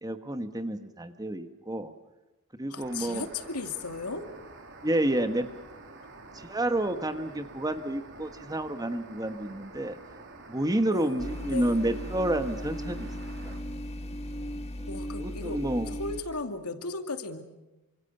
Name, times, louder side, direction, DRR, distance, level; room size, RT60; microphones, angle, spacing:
voice 1, 0.0-1.9 2.5-3.2 4.8-5.5 6.3-10.0 10.5-13.1 13.4-13.6 15.2-15.9, right 1 dB, 15° right, 9 dB, 1.3 m, -29 dB
voice 2, 2.7-4.3 6.0-6.1 10.9-11.8 14.9-17.4, left 3 dB, 90° left, 7 dB, 2.3 m, -36 dB
sound 1, 2.8-13.6, right 3 dB, 55° right, 3.9 m, -48 dB
sound 2, 11.2-16.2, equal, 30° left, 2.3 m, -37 dB
28.5 x 25.5 x 6.8 m, 1.1 s
head